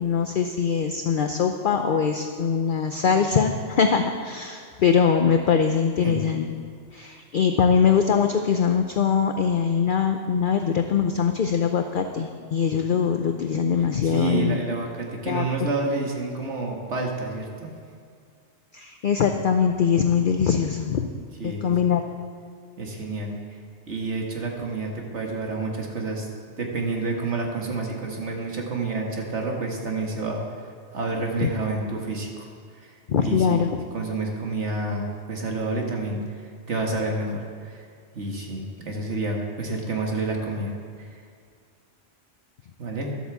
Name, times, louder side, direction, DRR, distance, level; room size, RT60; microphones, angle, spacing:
voice 1, 0.0-6.5 6.9-14.6 15.3-15.7 18.7-21.1 21.4-22.0 31.4-31.5 33.1-33.7, left 6 dB, 55° left, 5 dB, 0.7 m, -22 dB
voice 2, 14.0-17.7 21.4-21.9 22.8-23.3 23.9-26.3 26.6-30.4 30.9-32.5 32.8-32.9 33.2-33.6 33.9-37.9 38.1-40.7 41.0-41.1 42.8-43.1, right 3 dB, 70° right, 0 dB, 2.0 m, -29 dB
11.5 x 8.3 x 7.1 m, 2.2 s
omnidirectional pair, 1.2 m